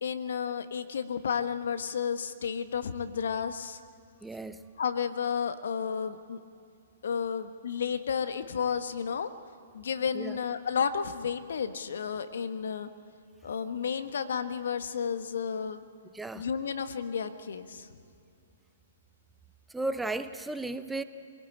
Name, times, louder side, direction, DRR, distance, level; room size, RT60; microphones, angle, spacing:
voice 1, 0.0-3.8 4.8-6.4 7.0-9.3 9.7-12.9 13.4-15.8 16.4-17.9, left 7 dB, 70° left, 9 dB, 1.4 m, -32 dB
voice 2, 4.2-4.6 10.1-10.4 16.1-16.5 19.7-21.0, right 2 dB, 5° right, 11 dB, 0.8 m, -34 dB
24.5 x 18.0 x 8.8 m, 2.5 s
hypercardioid pair, 125°, 0 cm